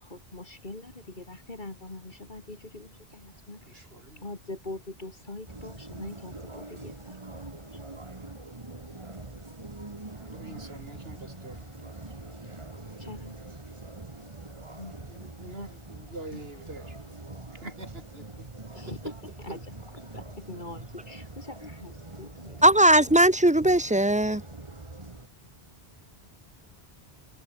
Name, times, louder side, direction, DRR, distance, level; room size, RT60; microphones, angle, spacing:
voice 1, 0.0-3.8 4.2-7.5 13.0-13.4 14.8-15.0 15.6-15.7 18.7-19.1 19.4-19.6 20.1-22.6, left 2 dB, 50° left, 2.8 m, -43 dB
voice 2, 3.6-4.3 10.1-12.0 13.1-13.2 15.1-17.2 17.5-18.5 18.8-19.1 19.5-19.6, right 2 dB, 65° right, 4.5 m, -45 dB
sound 1, 5.5-25.3, right 2 dB, 30° right, 2.0 m, -44 dB
voice 3, 22.6-24.4, right 1 dB, 5° right, 1.1 m, -19 dB
omnidirectional pair, 1.1 m